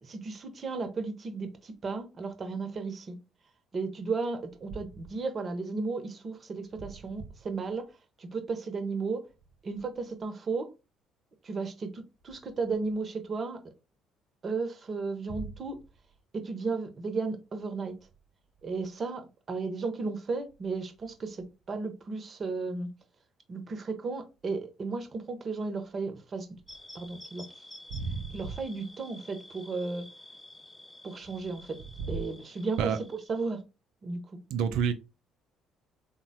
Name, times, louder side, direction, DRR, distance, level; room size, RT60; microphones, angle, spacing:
voice 1, 0.0-3.2 3.7-7.9 8.2-9.2 9.6-10.7 11.4-13.7 14.4-15.8 16.3-18.0 18.6-22.9 23.5-26.5 26.9-27.5 28.3-30.1 31.0-31.8 32.1-33.6 34.0-34.2, right 4 dB, 40° right, 0.7 m, -34 dB
sound 1, 26.7-33.5, left 1 dB, 15° left, 1.0 m, -50 dB
voice 2, 27.9-28.4 32.8-33.0 34.5-34.9, right 7 dB, 70° right, 0.4 m, -28 dB
3.4 x 2.1 x 2.7 m
hypercardioid pair, 50°, 0 cm